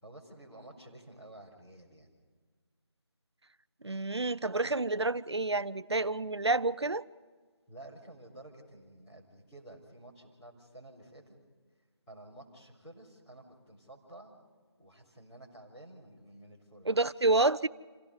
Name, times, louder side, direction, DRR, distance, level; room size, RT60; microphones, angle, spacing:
voice 1, 0.0-2.1 7.7-11.3 12.1-14.3 14.8-17.1, right 1 dB, 5° left, 3.8 m, -52 dB
voice 2, 3.8-7.0 16.8-17.7, right 2 dB, 70° right, 0.7 m, -29 dB
28.0 x 17.5 x 5.4 m
figure-of-eight pair, 165°, 14 cm